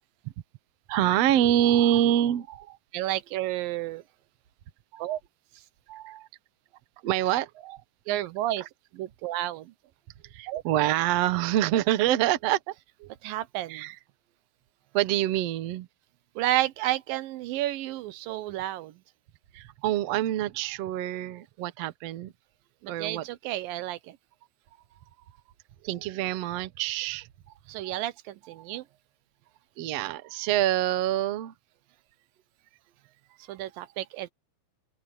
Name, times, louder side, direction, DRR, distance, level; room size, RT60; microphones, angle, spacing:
voice 1, 0.9-2.8 4.9-5.2 5.9-6.3 7.0-7.8 8.6-8.7 10.3-12.7 13.0-13.1 13.7-14.0 14.9-15.9 19.5-22.3 22.9-23.3 25.8-27.3 27.8-27.9 28.5-28.8 29.8-31.5 33.7-33.9, right 12 dB, 90° right, 1.4 m, -26 dB
voice 2, 2.9-4.0 5.0-5.2 8.1-8.7 8.9-9.7 10.5-10.6 13.2-13.9 16.4-19.0 22.8-24.2 27.7-28.8 33.5-34.3, right 14 dB, 75° right, 2.4 m, -31 dB
omnidirectional pair, 4.4 m